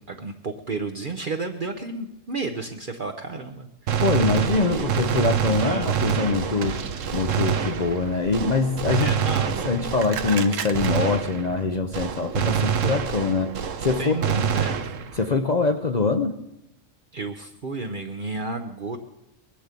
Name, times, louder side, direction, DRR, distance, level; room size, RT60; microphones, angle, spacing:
voice 1, 0.0-4.2 4.6-4.9 5.6-5.9 9.0-9.7 14.0-14.8 17.1-19.0, right 3 dB, 45° right, 5 dB, 0.9 m, -32 dB
Gunshot gunfire, 3.9-11.7 11.9-15.3, right 7 dB, 90° right, 1.3 m, -26 dB
voice 2, 4.0-6.8 7.1-9.1 9.6-13.5 13.8-14.1 15.1-16.3, left 4 dB, 40° left, 7 dB, 0.7 m, -23 dB
20.5 x 7.5 x 8.3 m, 0.87 s
omnidirectional pair, 1.3 m